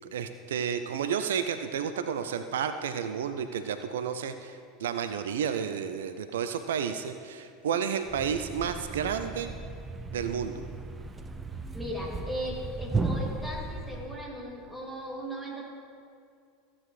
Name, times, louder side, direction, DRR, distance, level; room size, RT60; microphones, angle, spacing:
voice 1, 0.0-9.5 10.1-10.6, right 7 dB, 65° right, 10 dB, 0.4 m, -31 dB
Thump thud, 8.1-14.3, right 3 dB, 20° right, 0.6 m, -35 dB
voice 2, 11.7-15.7, equal, ahead, -4 dB, 2.5 m, -37 dB
15.0 x 8.5 x 3.2 m, 2.4 s
figure-of-eight pair, 80°, 0 cm